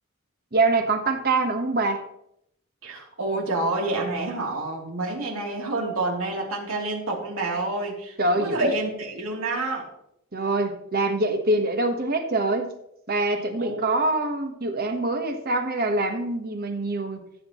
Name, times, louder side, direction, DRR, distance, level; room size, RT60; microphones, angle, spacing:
voice 1, 0.5-2.0 8.2-8.7 10.3-12.7 13.1-17.2, right 2 dB, 45° right, 6 dB, 1.3 m, -24 dB
voice 2, 2.8-9.9 13.6-14.0, right 2 dB, 70° right, -2 dB, 3.1 m, -28 dB
15.0 x 7.8 x 3.1 m, 0.76 s
head